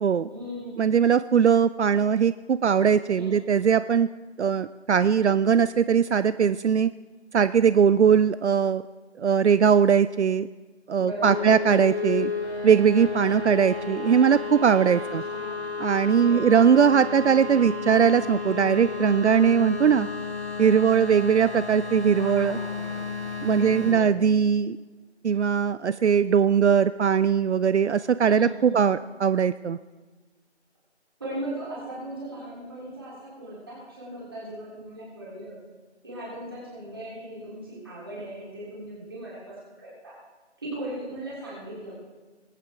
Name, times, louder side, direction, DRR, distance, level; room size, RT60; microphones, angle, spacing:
voice 1, 0.3-0.9 3.2-3.3 11.0-11.5 15.3-15.6 16.1-16.5 22.1-23.0 23.3-24.1 28.3-28.9 31.2-35.6 36.0-40.1 40.6-41.9, right 1 dB, 20° right, -7 dB, 3.7 m, -38 dB
voice 2, 0.8-4.1 4.4-6.9 7.3-8.8 9.2-10.5 10.9-12.3 12.6-15.2 15.8-20.1 20.6-22.6 23.4-24.8 25.2-29.8, right 7 dB, 75° right, 14 dB, 0.5 m, -20 dB
sound 1, 11.2-23.9, left 4 dB, 70° left, 3.3 m, -32 dB
21.0 x 8.9 x 3.7 m, 1.3 s
figure-of-eight pair, 175°, 35 cm